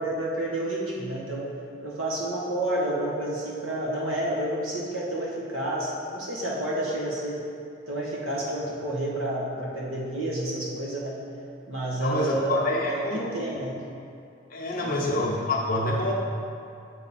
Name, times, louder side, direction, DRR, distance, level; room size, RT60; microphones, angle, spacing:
voice 1, 0.0-1.5 1.8-7.4 7.9-11.1 11.7-13.7 14.8-14.9, right 1 dB, 85° right, -4 dB, 1.2 m, -30 dB
voice 2, 12.0-13.3 14.5-16.1, left 1 dB, 45° left, -2 dB, 0.7 m, -27 dB
6.4 x 3.5 x 4.1 m, 2.5 s
head